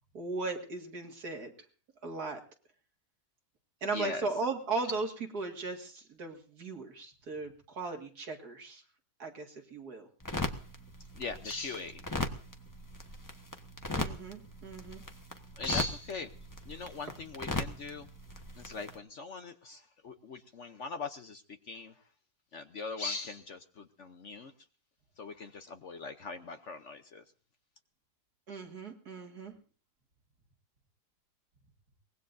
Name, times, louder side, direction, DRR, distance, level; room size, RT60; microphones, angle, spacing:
voice 1, 0.1-1.5 2.0-2.4 3.8-8.8 9.2-10.1 13.9-15.0 28.5-29.5, right 3 dB, 65° right, 3 dB, 2.6 m, -37 dB
voice 2, 3.9-4.3 11.2-12.0 15.6-16.3 16.7-18.1 18.6-21.9 22.5-24.5 25.2-27.2, left 3 dB, 50° left, 8 dB, 1.0 m, -40 dB
sound 1, 10.2-19.0, left 1 dB, 15° left, 1.0 m, -39 dB
23.5 x 19.5 x 2.7 m, 0.41 s
omnidirectional pair, 1.8 m